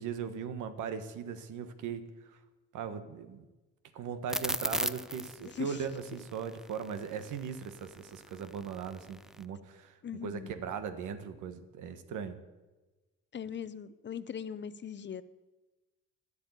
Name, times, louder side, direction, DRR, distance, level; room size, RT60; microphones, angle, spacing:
voice 1, 0.0-2.4 2.7-3.4 3.9-12.4, right 7 dB, 80° right, 10 dB, 1.2 m, -39 dB
sound 1, 4.3-9.5, equal, ahead, 0.3 m, -37 dB
voice 2, 5.4-5.8 10.0-10.5 13.3-15.2, left 8 dB, 35° left, 15 dB, 0.6 m, -40 dB
11.5 x 8.2 x 8.2 m, 1.1 s
cardioid pair, 90°, 30 cm